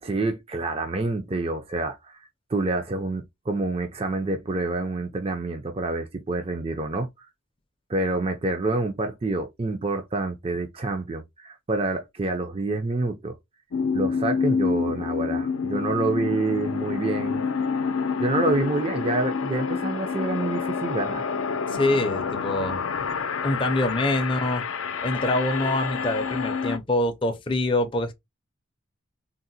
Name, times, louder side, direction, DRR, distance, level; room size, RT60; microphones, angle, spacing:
voice 1, 0.0-7.3 7.9-13.4 13.9-17.4 18.2-21.2, right 2 dB, 30° right, 0.4 m, -27 dB
sound 1, 13.7-26.8, left 5 dB, 85° left, 0.5 m, -28 dB
voice 2, 21.7-23.0 23.4-24.6 25.0-28.1, left 1 dB, 25° left, 0.5 m, -25 dB
3.7 x 2.1 x 2.6 m
head